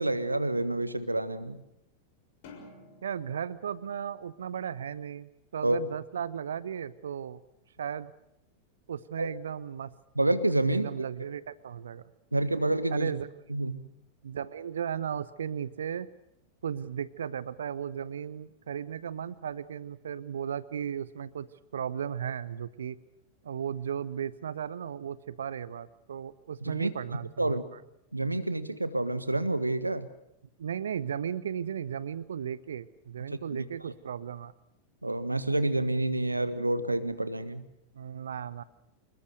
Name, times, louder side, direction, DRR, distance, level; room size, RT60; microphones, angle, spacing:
voice 1, 0.0-1.6 5.6-5.8 9.2-9.3 10.1-11.1 12.3-13.1 13.5-13.9 26.6-26.9 27.4-27.6 28.1-30.1 33.3-33.6 35.0-37.6, right 2 dB, 85° right, 13 dB, 1.5 m, -28 dB
sound 1, 2.4-5.0, left 3 dB, 50° left, 6.5 m, -53 dB
voice 2, 3.0-7.4 7.8-8.1 8.9-9.9 10.7-12.0 12.9-13.3 14.2-16.1 16.6-21.5 21.7-23.0 23.4-27.8 30.6-34.5 37.9-38.6, right 8 dB, 65° right, 19 dB, 0.8 m, -35 dB
26.5 x 21.5 x 6.6 m, 0.81 s
figure-of-eight pair, 90°, 0 cm